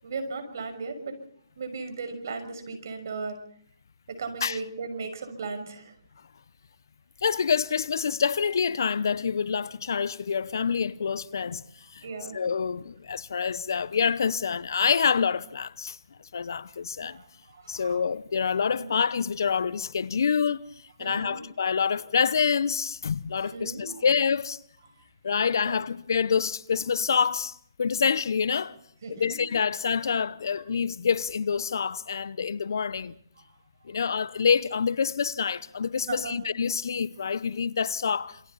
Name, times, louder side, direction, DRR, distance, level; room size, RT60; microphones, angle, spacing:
voice 1, 0.0-1.2 1.6-3.4 4.1-5.9 12.0-12.4 17.0-18.0 18.7-19.0 21.0-21.4 23.4-24.0 25.6-25.9 29.0-29.4 33.9-34.0 36.1-36.4, right 4 dB, 55° right, 6.0 m, -37 dB
voice 2, 7.2-11.6 11.9-12.0 12.3-16.0 16.3-17.2 17.7-20.6 21.0-24.6 25.2-28.8 29.1-33.1 33.8-38.4, left 6 dB, 65° left, 0.9 m, -27 dB
28.0 x 25.0 x 4.2 m
hypercardioid pair, 155°, 2 cm